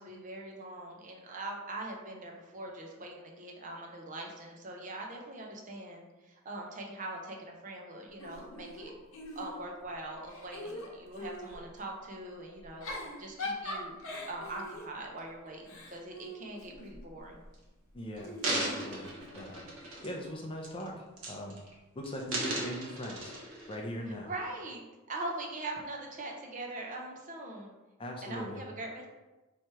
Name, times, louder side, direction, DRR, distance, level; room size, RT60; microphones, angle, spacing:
voice 1, 0.0-8.9 9.4-14.0 14.3-17.4 24.2-24.8 25.1-27.7 28.2-29.1, right 2 dB, 35° right, 0 dB, 0.6 m, -42 dB
Giggle / Chuckle chortle, 8.2-9.8 10.2-11.6 12.6-17.1 18.2-19.6, left 2 dB, 80° left, 0.9 m, -42 dB
sound 1, 17.2-17.5 18.2-20.3 20.6-20.9 21.2-21.7 22.0-23.8 24.3-24.4, right 2 dB, 90° right, 1.0 m, -36 dB
voice 2, 17.9-19.7 20.0-21.6 21.9-23.3 23.7-24.3 28.0-28.6, equal, 25° left, 0 dB, 0.4 m, -40 dB
3.1 x 2.9 x 4.5 m, 1.1 s
head